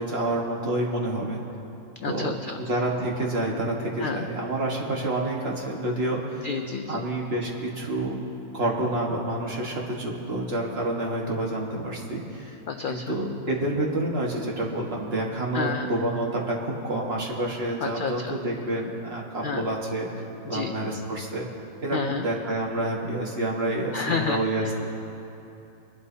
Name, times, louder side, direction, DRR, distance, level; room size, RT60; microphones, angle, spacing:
voice 1, 0.0-1.4 2.0-6.5 6.9-8.2 8.5-12.6 12.9-20.1 20.5-21.5 21.8-24.9, right 1 dB, 50° right, -2 dB, 1.7 m, -28 dB
voice 2, 2.0-2.6 4.0-4.3 6.4-7.0 12.7-13.2 15.5-15.9 17.8-18.4 19.4-19.7 20.5-20.7 21.9-22.2 23.9-24.7, left 5 dB, 70° left, 6 dB, 0.4 m, -30 dB
23.0 x 11.5 x 2.8 m, 2.8 s
omnidirectional pair, 1.4 m